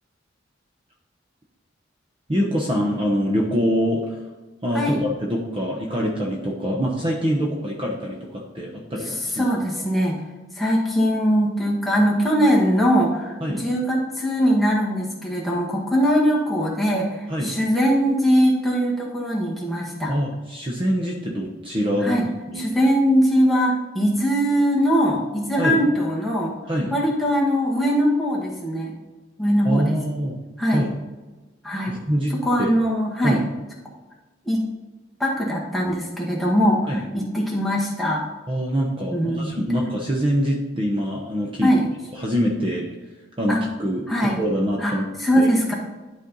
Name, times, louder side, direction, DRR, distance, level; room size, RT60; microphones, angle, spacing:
voice 1, 2.3-4.2 4.6-9.4 13.4-13.7 17.3-17.6 20.1-22.2 22.5-22.7 25.6-25.8 26.7-26.9 29.6-30.4 30.7-30.9 31.9-32.3 32.6-32.7 33.2-33.4 36.9-37.1 38.5-41.7 42.1-42.8 43.4-45.1 45.4-45.5, equal, 30° right, -1 dB, 0.9 m, -24 dB
voice 2, 9.1-10.2 10.6-20.1 22.0-22.2 22.5-26.6 26.9-28.9 29.4-30.0 30.6-30.9 31.6-31.9 32.4-33.4 34.4-34.6 35.2-38.2 39.1-39.5 41.6-41.9 43.5-43.6 44.1-44.4 44.8-44.9 45.2-45.7, equal, ahead, -4 dB, 1.6 m, -21 dB
11.5 x 4.3 x 4.0 m, 1.2 s
head